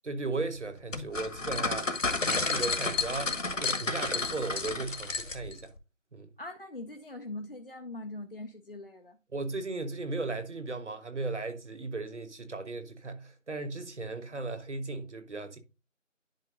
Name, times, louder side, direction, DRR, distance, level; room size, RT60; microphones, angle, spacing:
voice 1, 0.0-1.9 2.2-5.7 6.1-6.3 9.3-15.6, right 3 dB, 60° right, 1.3 m, -36 dB
sound 1, 0.9-5.6, left 3 dB, 75° left, 1.4 m, -31 dB
voice 2, 6.4-9.2, left 2 dB, 45° left, 0.6 m, -42 dB
10.5 x 5.0 x 2.5 m
figure-of-eight pair, 160°, 39 cm